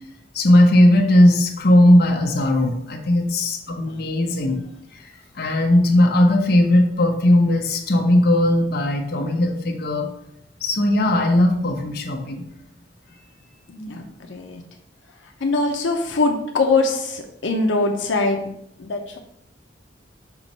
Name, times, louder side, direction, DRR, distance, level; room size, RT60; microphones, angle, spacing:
voice 1, 0.3-4.6 4.9-5.1 5.3-10.1 10.6-12.4, left 1 dB, 60° left, 2 dB, 0.9 m, -17 dB
voice 2, 13.7-14.6 15.4-18.5 18.8-19.2, left 3 dB, 90° left, 2 dB, 0.7 m, -22 dB
5.9 x 3.0 x 5.3 m, 0.76 s
head